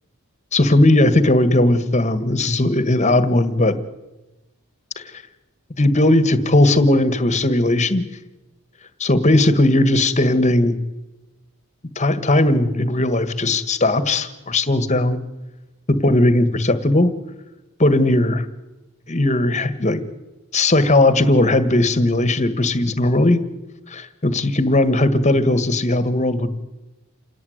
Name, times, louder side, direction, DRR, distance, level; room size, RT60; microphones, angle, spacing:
voice 1, 0.5-3.8 5.1-5.2 5.8-8.0 9.0-10.8 12.0-15.2 15.9-17.1 17.8-18.5 19.1-20.0 20.5-23.4 23.9-26.5, left 1 dB, 35° left, 12 dB, 1.8 m, -17 dB
28.0 x 18.0 x 9.6 m, 1.0 s
head